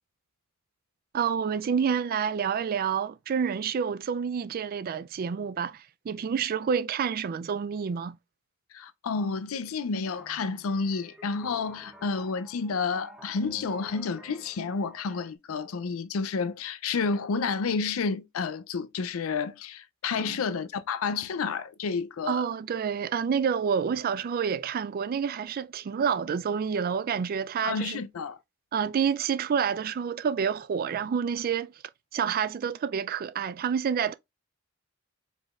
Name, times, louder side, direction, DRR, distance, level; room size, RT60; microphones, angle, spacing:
voice 1, 1.1-8.2 20.2-20.4 22.3-28.0 28.7-31.7 32.1-34.1, right 7 dB, 45° right, 0.3 m, -28 dB
voice 2, 8.7-22.4 27.6-28.4, left 5 dB, 90° left, 0.4 m, -30 dB
sound 1, 10.0-15.3, right 1 dB, 5° right, 0.6 m, -52 dB
5.0 x 3.9 x 2.4 m
head